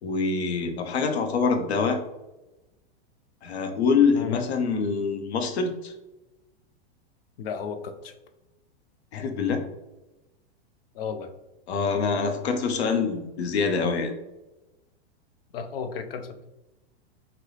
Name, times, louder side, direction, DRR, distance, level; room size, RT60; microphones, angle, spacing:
voice 1, 0.0-2.0 3.4-5.9 9.1-9.6 11.7-14.1, left 5 dB, 85° left, 5 dB, 0.9 m, -25 dB
voice 2, 7.4-8.1 10.9-11.3 15.5-16.5, left 6 dB, 65° left, 6 dB, 0.7 m, -34 dB
5.9 x 2.3 x 3.2 m, 1.0 s
supercardioid pair, 180°, 32 cm